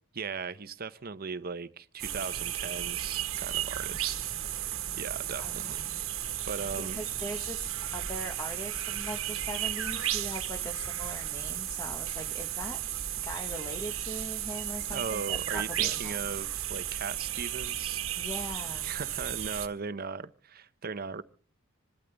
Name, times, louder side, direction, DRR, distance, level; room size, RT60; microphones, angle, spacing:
voice 1, 0.1-4.3 4.9-5.8 6.5-7.0 14.9-18.0 18.8-21.2, right 5 dB, 45° right, 0.7 m, -38 dB
sound 1, 2.0-19.7, right 11 dB, 65° right, 1.4 m, -34 dB
voice 2, 5.4-6.0 6.5-12.8 13.2-16.2 18.2-18.9, equal, 15° left, 1.3 m, -41 dB
26.5 x 12.5 x 3.4 m
head